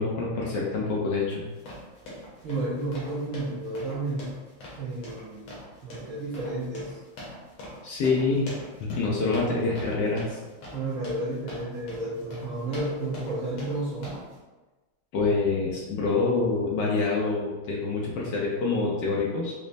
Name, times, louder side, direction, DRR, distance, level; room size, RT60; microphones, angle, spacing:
voice 1, 0.0-1.5 7.8-8.5 8.8-10.4 15.1-19.5, left 3 dB, 70° left, -4 dB, 1.1 m, -26 dB
sound 1, 1.4-14.4, left 1 dB, 90° left, 1.9 m, -43 dB
voice 2, 2.4-4.4 4.8-7.0 10.7-14.2, right 2 dB, 80° right, -7 dB, 0.7 m, -32 dB
5.1 x 2.0 x 2.5 m, 1.2 s
omnidirectional pair, 2.3 m